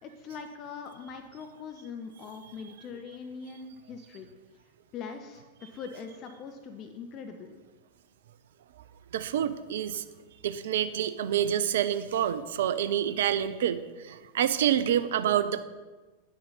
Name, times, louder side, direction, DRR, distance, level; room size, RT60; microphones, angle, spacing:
voice 1, 0.0-4.3 4.9-7.5, left 5 dB, 35° left, 6 dB, 0.6 m, -42 dB
voice 2, 9.1-10.0 10.4-15.6, right 10 dB, 60° right, 13 dB, 0.5 m, -27 dB
9.6 x 6.5 x 4.1 m, 1.3 s
figure-of-eight pair, 90°, 0 cm